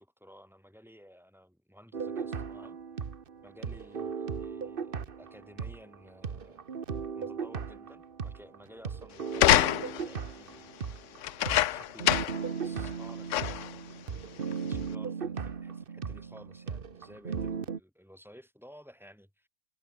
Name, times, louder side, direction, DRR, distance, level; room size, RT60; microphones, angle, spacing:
voice 1, 0.0-2.8 3.4-6.6 7.1-11.0 11.7-13.7 14.5-19.5, equal, ahead, 4.6 m, -54 dB
sound 1, 1.9-6.0 6.2-17.8, right 6 dB, 40° right, 1.2 m, -37 dB
sound 2, 9.3-10.1 11.2-12.5 12.8-12.9 13.3-13.8 14.5-14.6, left 13 dB, 65° left, 0.8 m, -25 dB
omnidirectional pair, 1.6 m